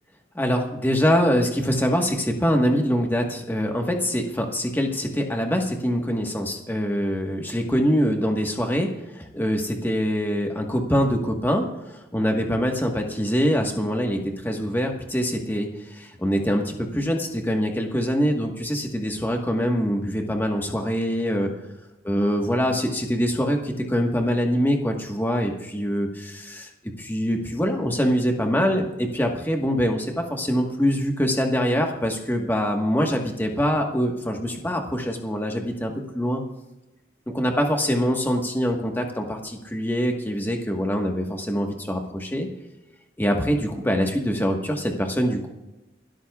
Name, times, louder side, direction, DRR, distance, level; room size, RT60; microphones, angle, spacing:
voice 1, 0.3-8.9 9.1-11.6 12.1-21.5 22.0-26.7 27.0-36.4 37.3-42.5 43.2-45.5, equal, 10° left, 2 dB, 1.4 m, -24 dB
29.0 x 13.0 x 2.4 m, 1.0 s
head